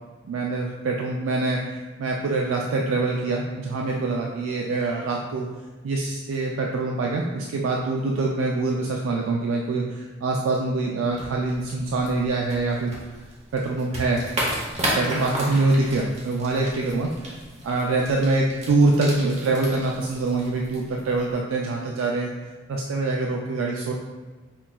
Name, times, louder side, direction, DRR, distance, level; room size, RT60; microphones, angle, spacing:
voice 1, 0.3-5.5 5.8-12.9 13.5-14.2 15.0-17.3 17.6-22.3 22.7-23.9, right 3 dB, 80° right, -1 dB, 0.3 m, -24 dB
sound 1, 11.1-21.3, right 1 dB, 35° right, 0.8 m, -33 dB
5.5 x 2.3 x 2.2 m, 1.3 s
head